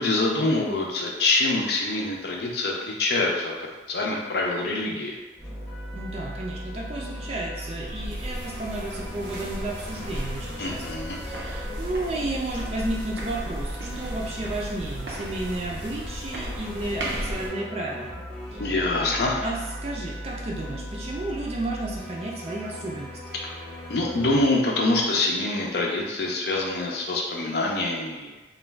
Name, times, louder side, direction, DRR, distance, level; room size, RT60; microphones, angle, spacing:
voice 1, 0.0-3.5 3.9-5.1 10.6-11.2 18.6-19.4 23.9-28.4, left 2 dB, 65° left, -1 dB, 0.5 m, -25 dB
sound 1, 5.4-24.4, equal, 5° left, 0.6 m, -38 dB
voice 2, 5.9-18.2 18.5-18.7 19.4-23.2, right 2 dB, 35° right, -3 dB, 0.4 m, -33 dB
sound 2, 7.8-17.5, equal, 85° right, 0.5 m, -35 dB
2.4 x 2.2 x 3.2 m, 1.2 s
head